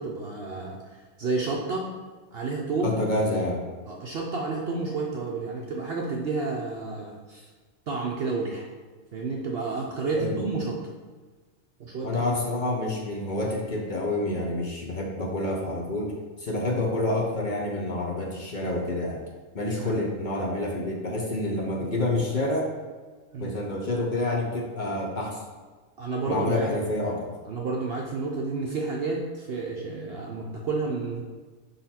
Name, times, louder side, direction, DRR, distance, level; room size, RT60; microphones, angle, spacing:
voice 1, 0.0-1.9 2.3-3.0 3.9-7.5 7.9-8.7 9.1-10.8 11.8-12.2 16.6-16.7 19.8-19.9 23.3-23.6 26.0-26.7 27.0-27.2 27.4-31.2, right 3 dB, 55° right, -1 dB, 0.7 m, -30 dB
voice 2, 2.8-3.6 10.1-10.4 12.0-19.2 19.5-22.7 23.4-25.4 26.3-27.3, left 2 dB, 45° left, -1 dB, 0.7 m, -28 dB
5.6 x 4.0 x 4.2 m, 1.4 s
omnidirectional pair, 1.4 m